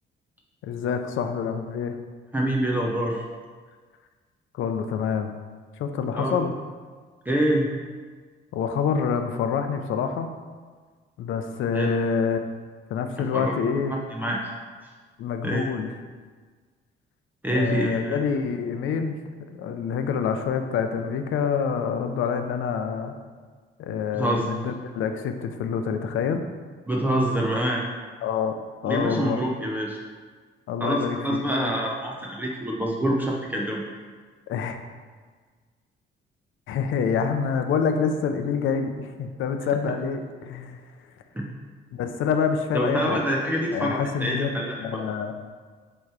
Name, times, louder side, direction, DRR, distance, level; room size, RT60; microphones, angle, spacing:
voice 1, 0.6-2.0 4.5-5.3 5.8-6.5 8.5-10.3 11.2-12.4 12.9-13.9 15.2-15.9 17.5-19.2 19.5-23.1 23.8-26.4 28.2-28.6 28.8-29.4 30.7-31.2 34.5-34.8 36.7-40.8 41.9-43.2 43.7-44.5 44.8-45.3, left 6 dB, 80° left, 7 dB, 0.6 m, -26 dB
voice 2, 2.3-3.2 6.2-6.5 7.3-7.7 11.7-11.9 13.3-13.5 13.9-14.5 14.8-14.9 15.4-15.7 17.4-18.2 24.1-24.5 26.9-27.8 28.8-30.0 30.8-33.8 41.3-41.6 42.7-45.0, right 1 dB, 10° right, -2 dB, 0.6 m, -26 dB
7.3 x 3.1 x 4.7 m, 1.5 s
cardioid pair, 125°, 20 cm